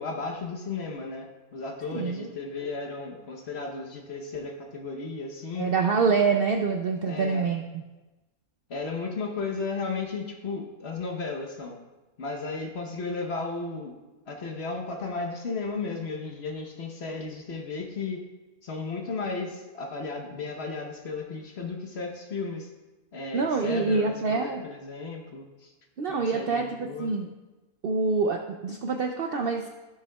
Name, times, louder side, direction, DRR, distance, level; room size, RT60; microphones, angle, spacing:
voice 1, 0.0-5.7 7.1-7.4 8.7-11.8 12.2-13.9 14.3-18.2 18.6-22.7 23.1-25.7 26.1-27.1, left 4 dB, 50° left, 2 dB, 1.0 m, -34 dB
voice 2, 1.9-2.3 5.6-7.8 23.3-24.6 26.0-27.3 27.8-29.7, right 4 dB, 90° right, 3 dB, 0.5 m, -26 dB
13.0 x 6.9 x 2.3 m, 1.1 s
omnidirectional pair, 1.6 m